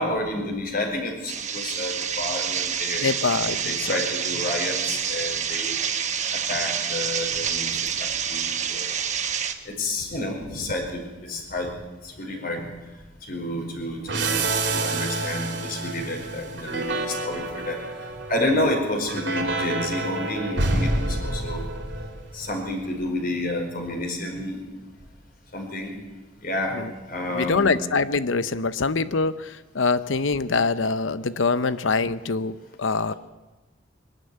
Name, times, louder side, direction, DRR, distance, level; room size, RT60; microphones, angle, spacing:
voice 1, 0.0-3.1 3.4-5.8 6.3-8.9 9.6-11.7 12.0-12.7 13.3-17.8 18.3-21.7 22.3-24.6 25.5-25.9 26.4-26.8 27.1-27.7, left 1 dB, 50° left, 2 dB, 5.0 m, -30 dB
sound 1, 1.3-9.5, right 7 dB, 40° right, 1.2 m, -28 dB
voice 2, 3.0-4.0 26.7-26.9 27.3-33.1, left 4 dB, 85° left, 14 dB, 0.8 m, -24 dB
sound 2, 14.1-22.5, right 2 dB, 65° right, 3.4 m, -28 dB
22.5 x 12.0 x 9.6 m, 1.2 s
head